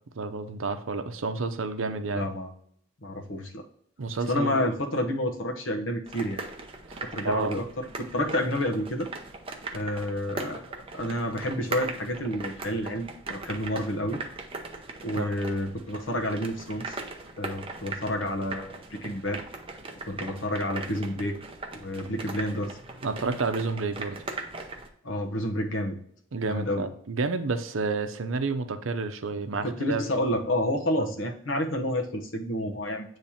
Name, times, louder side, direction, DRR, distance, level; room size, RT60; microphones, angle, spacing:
voice 1, 0.2-2.3 4.0-4.7 6.9-7.0 7.2-7.6 15.1-15.3 23.0-24.2 26.3-30.0, right 4 dB, 80° right, 8 dB, 0.7 m, -30 dB
voice 2, 2.1-2.5 3.0-3.6 4.3-6.4 7.1-9.1 9.7-10.6 10.9-14.2 15.0-17.0 17.4-19.4 20.1-21.4 21.7-22.8 25.0-26.0 26.4-26.9 29.6-33.2, left 1 dB, 70° left, 3 dB, 1.0 m, -29 dB
sound 1, 6.1-24.9, right 3 dB, 30° right, 0.7 m, -39 dB
8.6 x 3.2 x 4.2 m, 0.67 s
head